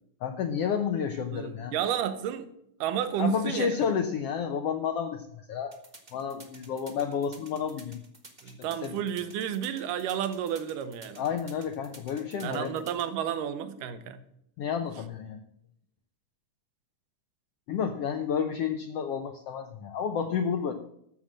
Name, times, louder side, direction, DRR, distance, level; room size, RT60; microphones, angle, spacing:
voice 1, 0.2-1.7 3.2-5.8 6.1-8.0 8.8-9.0 11.2-12.8 14.6-15.4 17.7-20.7, left 7 dB, 80° left, 1.4 m, -30 dB
voice 2, 1.3-2.5 2.8-3.8 8.4-11.2 12.4-14.2, right 9 dB, 85° right, 2.5 m, -31 dB
sound 1, 5.7-13.0, right 3 dB, 60° right, 0.4 m, -51 dB
13.0 x 6.5 x 7.4 m
omnidirectional pair, 3.7 m